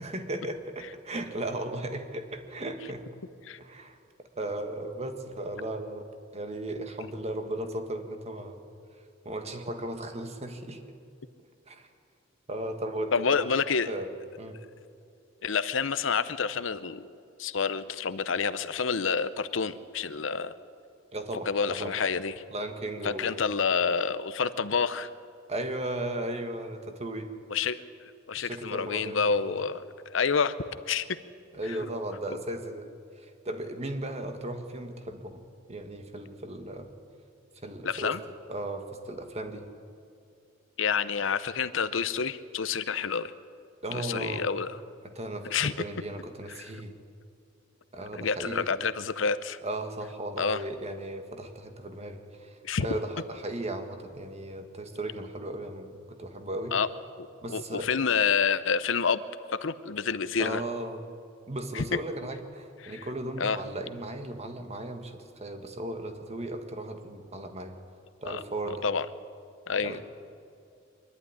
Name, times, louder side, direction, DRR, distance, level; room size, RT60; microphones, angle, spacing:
voice 1, 0.0-3.1 3.6-4.0 4.3-6.1 6.3-8.6 9.2-10.8 11.7-11.9 12.5-13.4 13.8-14.1 14.4-14.6 21.1-21.9 22.5-23.6 25.5-27.3 28.3-29.6 31.5-32.9 33.1-35.4 35.7-36.9 37.6-38.2 38.5-39.7 43.8-44.5 45.0-46.9 47.9-48.7 49.6-56.8 57.4-57.9 60.4-61.0 61.5-67.8 68.2-68.9 69.8-70.1, right 1 dB, 35° right, 6 dB, 1.7 m, -36 dB
voice 2, 13.1-13.9 15.4-17.1 17.4-20.5 21.5-22.3 23.0-25.1 27.5-27.8 28.3-29.8 30.1-30.5 30.9-31.1 31.7-31.8 37.8-38.2 40.8-43.3 43.9-44.8 45.4-45.7 48.2-49.6 50.4-50.6 52.6-52.9 56.7-56.9 57.2-59.2 59.6-60.6 61.7-61.8 62.8-63.1 63.4-63.6 68.3-68.4 68.8-69.1 69.7-70.0, left 5 dB, 80° left, 13 dB, 0.7 m, -28 dB
23.5 x 11.5 x 9.8 m, 2.5 s
head